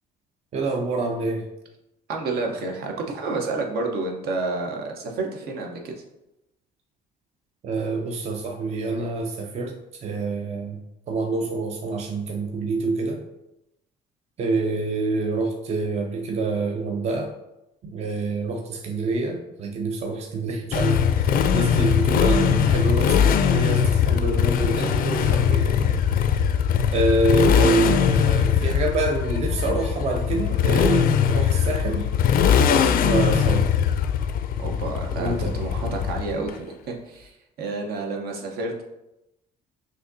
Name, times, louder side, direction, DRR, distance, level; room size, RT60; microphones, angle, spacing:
voice 1, 0.5-1.5 7.6-10.8 11.1-13.3 14.4-17.3 17.8-26.0 26.9-32.1 32.6-33.7 35.2-35.6, right 2 dB, 40° right, 2 dB, 0.5 m, -26 dB
voice 2, 2.1-6.0 34.6-38.8, right 3 dB, 70° right, 1 dB, 0.8 m, -30 dB
Motorcycle, 20.7-36.5, left 8 dB, 60° left, 0.4 m, -21 dB
6.1 x 2.7 x 2.6 m, 0.90 s
cardioid pair, 110°, 17 cm